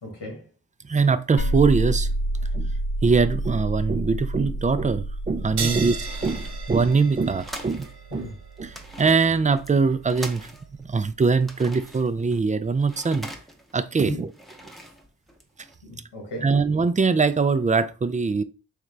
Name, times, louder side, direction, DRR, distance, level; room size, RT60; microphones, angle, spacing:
voice 1, 0.0-0.5 2.4-2.5 5.6-5.8 8.1-8.4 14.0-14.2 15.8-16.6, equal, 90° left, 1.6 m, -35 dB
voice 2, 0.9-2.1 2.5-2.7 3.0-6.0 6.2-8.2 8.6-8.7 9.0-10.5 10.8-13.3 13.7-14.3 16.4-18.4, right 4 dB, 20° right, 0.3 m, -22 dB
sound 1, 1.4-6.9, right 1 dB, 55° left, 0.6 m, -28 dB
sound 2, 5.4-8.0 8.2-8.3 8.6-10.9 11.2-13.8 14.2-15.7, equal, ahead, 0.7 m, -42 dB
sound 3, 5.6-12.6, right 6 dB, 75° right, 0.8 m, -38 dB
3.7 x 3.1 x 3.3 m
cardioid pair, 55°, 41 cm